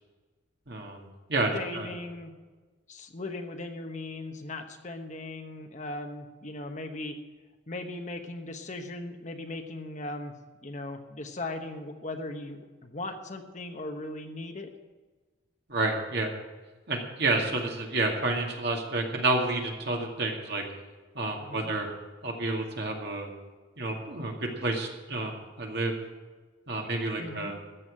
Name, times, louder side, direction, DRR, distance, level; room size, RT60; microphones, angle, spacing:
voice 1, 0.7-1.9 15.7-16.3 16.9-20.7 21.1-21.9 22.2-23.3 23.8-25.9 26.7-27.6, right 2 dB, 55° right, 1 dB, 2.2 m, -30 dB
voice 2, 1.5-2.3 2.9-7.1 7.7-10.3 10.6-14.7 21.4-21.7 27.2-27.5, left 2 dB, 35° left, 6 dB, 1.0 m, -38 dB
13.5 x 7.2 x 8.6 m, 1.3 s
head